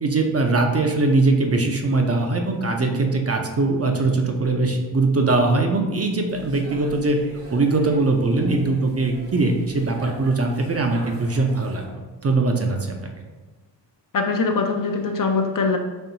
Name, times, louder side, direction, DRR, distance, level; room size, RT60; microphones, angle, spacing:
voice 1, 0.0-7.2 7.5-11.8 12.2-13.0, right 3 dB, 35° right, 3 dB, 0.6 m, -21 dB
sound 1, 6.3-11.9, right 2 dB, 70° right, 1.0 m, -43 dB
voice 2, 14.1-15.8, left 4 dB, 45° left, 4 dB, 0.5 m, -22 dB
4.2 x 2.9 x 2.7 m, 1.2 s
cardioid pair, 45°, 44 cm